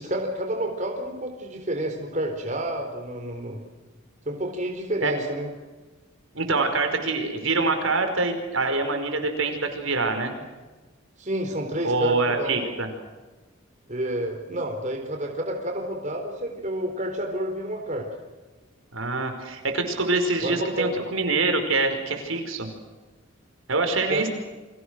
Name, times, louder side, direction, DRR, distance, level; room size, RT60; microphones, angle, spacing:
voice 1, 0.0-3.6 4.3-5.5 11.2-12.7 13.9-18.1 20.4-21.0 24.1-24.2, right 1 dB, 35° right, 3 dB, 4.1 m, -29 dB
voice 2, 6.4-10.4 11.8-12.9 18.9-22.7 23.7-24.3, right 3 dB, 75° right, 6 dB, 5.2 m, -25 dB
30.0 x 25.5 x 6.5 m, 1.2 s
head